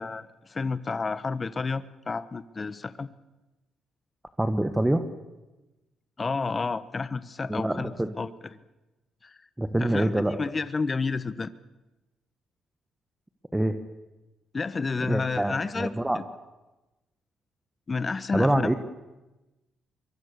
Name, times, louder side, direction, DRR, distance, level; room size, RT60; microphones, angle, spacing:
voice 1, 0.0-3.1 6.2-7.9 8.2-8.3 9.2-9.4 9.8-11.5 14.5-16.2 17.9-18.6, left 4 dB, 30° left, 15 dB, 1.1 m, -30 dB
voice 2, 4.4-5.1 7.5-8.1 9.6-10.4 13.5-13.8 15.1-16.2 18.3-18.7, right 1 dB, 10° right, 8 dB, 1.4 m, -25 dB
24.0 x 23.0 x 6.8 m, 1.1 s
cardioid pair, 90°, 0 cm